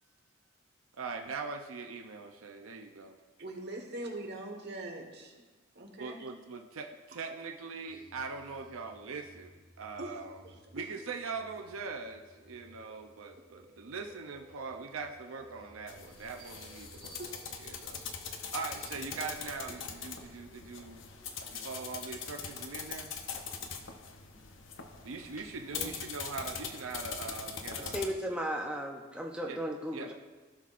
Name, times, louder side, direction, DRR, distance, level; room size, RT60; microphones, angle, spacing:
voice 1, 0.9-3.2 6.0-10.4 10.7-17.2 17.6-21.1 21.5-23.1 25.0-28.1 29.5-29.6 29.9-30.1, right 4 dB, 80° right, 4 dB, 0.6 m, -41 dB
voice 2, 3.4-5.3 5.7-6.3 10.0-10.8 17.2-17.4, right 1 dB, 55° right, 1 dB, 1.4 m, -42 dB
sound 1, 7.9-25.0, right 1 dB, 25° right, 2.7 m, -59 dB
sound 2, 15.9-28.1, left 6 dB, 65° left, 0.8 m, -42 dB
voice 3, 27.8-30.1, equal, 5° right, 0 dB, 0.5 m, -36 dB
16.0 x 5.8 x 2.5 m, 1.3 s
head